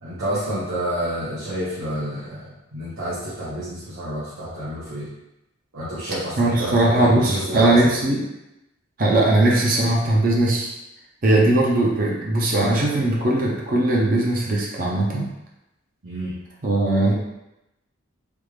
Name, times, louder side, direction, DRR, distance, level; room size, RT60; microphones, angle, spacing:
voice 1, 0.0-5.1 5.7-7.9 16.0-16.4, equal, 85° right, -12 dB, 1.1 m, -29 dB
voice 2, 6.4-8.2 9.0-10.7 11.2-15.3 16.6-17.1, right 1 dB, 45° right, -3 dB, 0.6 m, -19 dB
3.4 x 2.4 x 3.2 m, 0.91 s
head